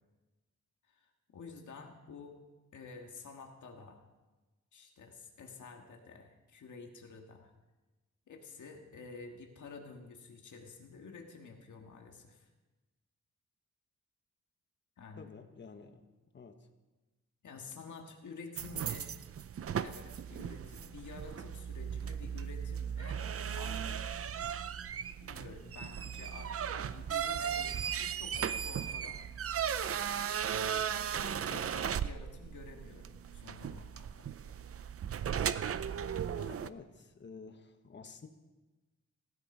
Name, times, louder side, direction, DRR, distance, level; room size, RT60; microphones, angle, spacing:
voice 1, 0.8-2.4 2.7-4.0 4.7-7.5 8.3-12.5 15.0-15.3 17.4-19.2 19.8-24.4 25.2-29.2 31.2-34.3, left 4 dB, 85° left, 2 dB, 1.7 m, -50 dB
voice 2, 15.2-16.0 16.3-16.6 31.5-31.8 36.3-38.3, left 5 dB, 40° left, 6 dB, 1.1 m, -50 dB
sound 1, 18.6-36.7, right 8 dB, 50° right, 0.5 m, -37 dB
16.5 x 13.0 x 5.5 m, 1.2 s
wide cardioid pair, 125°, 29 cm